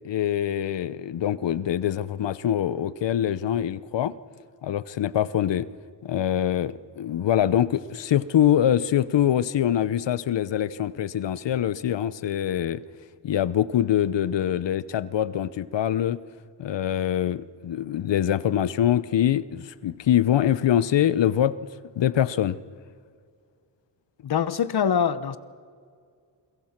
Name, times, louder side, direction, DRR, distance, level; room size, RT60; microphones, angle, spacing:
voice 1, 0.0-4.1 4.6-5.7 6.0-12.8 13.2-16.2 16.6-21.7 21.9-22.6, left 10 dB, 80° left, 18 dB, 0.9 m, -24 dB
voice 2, 24.2-25.4, left 7 dB, 60° left, 16 dB, 1.1 m, -24 dB
29.0 x 22.0 x 6.0 m, 2.2 s
wide cardioid pair, 105°, 43 cm